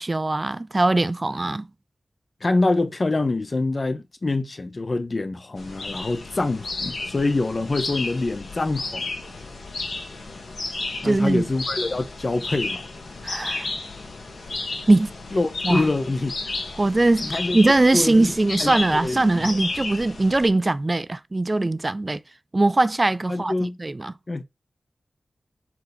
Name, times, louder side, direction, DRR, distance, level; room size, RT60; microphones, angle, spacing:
voice 1, 0.0-1.7 11.0-11.4 13.2-13.7 14.9-15.1 15.6-15.9 16.8-22.2 22.5-24.1, right 2 dB, 30° right, 0.4 m, -21 dB
voice 2, 2.4-9.1 11.0-12.8 15.3-16.3 17.2-17.6 17.9-18.3 18.6-19.6 23.3-23.8 24.3-24.4, left 2 dB, 45° left, 0.8 m, -25 dB
sound 1, 5.6-20.5, left 3 dB, 85° left, 1.9 m, -33 dB
5.1 x 4.5 x 4.1 m
wide cardioid pair, 85°, 0 cm